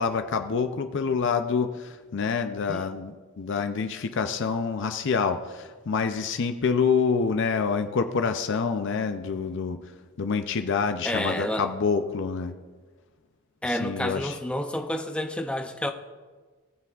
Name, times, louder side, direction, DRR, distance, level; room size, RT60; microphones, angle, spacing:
voice 1, 0.0-9.8 10.2-12.5 13.7-14.4, left 5 dB, 60° left, 8 dB, 0.5 m, -27 dB
voice 2, 11.0-11.7 13.6-15.9, left 1 dB, 5° left, 6 dB, 0.5 m, -29 dB
20.0 x 6.9 x 2.4 m, 1.4 s
head